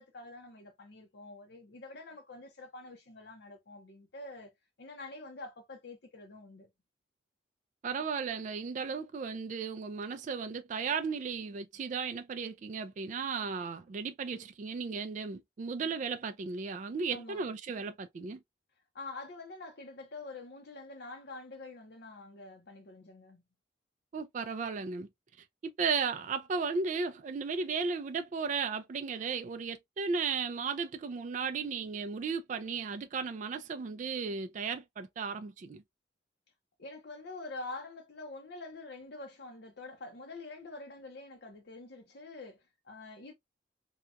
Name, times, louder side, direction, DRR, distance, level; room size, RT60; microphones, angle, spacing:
voice 1, 0.0-4.5 4.8-6.7 17.1-17.4 18.9-23.4 36.8-43.3, left 2 dB, 60° left, 0.7 m, -46 dB
voice 2, 7.8-18.4 24.1-25.1 25.6-35.8, right 5 dB, 40° right, 0.3 m, -35 dB
2.8 x 2.3 x 2.3 m
head